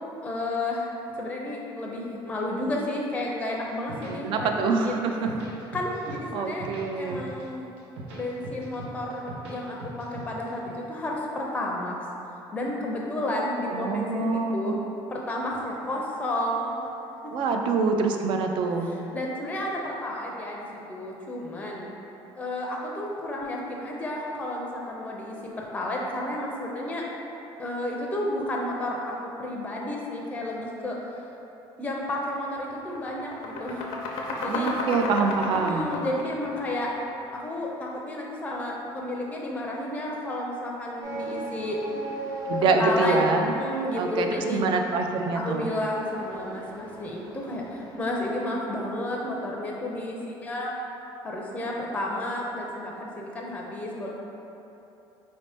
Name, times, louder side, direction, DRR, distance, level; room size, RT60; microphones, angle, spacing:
voice 1, 0.2-4.5 4.8-5.0 5.7-6.7 6.9-7.6 8.1-11.9 12.5-14.7 15.1-16.8 17.2-17.3 18.8-20.6 20.9-21.9 22.3-27.1 27.6-31.0 31.8-33.9 34.4-34.7 35.5-36.9 37.3-41.8 42.8-43.2 43.5-44.6 45.3-50.7 51.2-54.1, left 1 dB, 15° left, -2 dB, 0.4 m, -31 dB
sound 1, 3.7-4.7 5.1-6.2 6.5-7.4 7.8-9.5 9.8-10.7, right 2 dB, 90° right, 0.7 m, -40 dB
voice 2, 4.1-5.3 6.3-7.2 13.7-14.8 17.3-18.9 34.4-35.9 42.5-43.5 44.0-45.7, right 4 dB, 60° right, 4 dB, 0.3 m, -25 dB
sound 2, 32.0-32.2 32.5-37.5, left 2 dB, 85° left, 0.5 m, -32 dB
sound 3, 41.0-48.4, equal, 35° right, 0.7 m, -37 dB
4.1 x 2.7 x 3.3 m, 3.0 s
cardioid pair, 140°, 10 cm